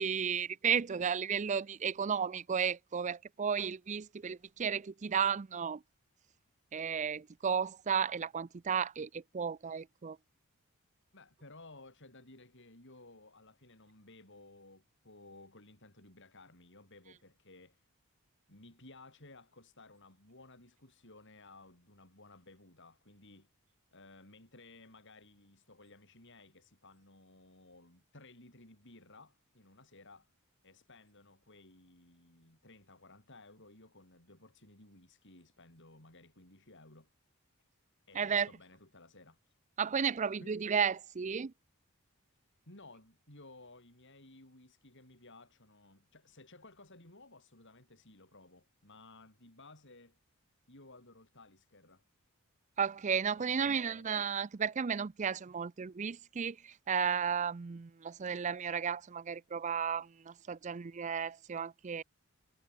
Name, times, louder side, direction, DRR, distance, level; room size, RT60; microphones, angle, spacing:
voice 1, 0.0-5.8 6.7-10.2 38.2-38.5 39.8-41.5 52.8-62.0, right 7 dB, 35° right, 0.4 m, -33 dB
voice 2, 11.1-17.8 18.5-23.5 23.9-30.3 30.6-37.1 38.1-39.5 40.4-40.6 42.7-50.2 50.7-52.0 53.3-54.1, left 2 dB, 55° left, 7.3 m, -57 dB
head